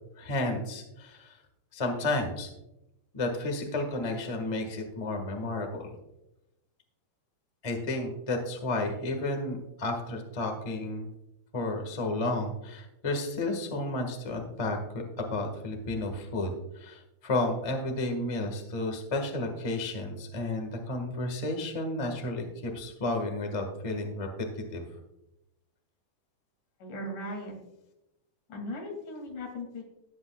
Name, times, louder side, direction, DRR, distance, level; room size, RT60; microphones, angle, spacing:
voice 1, 0.2-1.4 1.7-2.5 3.1-5.9 7.6-11.1 11.5-16.5 16.7-24.3 24.7-24.8, left 2 dB, 25° left, 3 dB, 0.7 m, -32 dB
voice 2, 26.8-27.5 28.5-29.8, left 1 dB, 85° left, 0 dB, 4.1 m, -38 dB
18.0 x 8.0 x 2.3 m, 0.88 s
omnidirectional pair, 3.5 m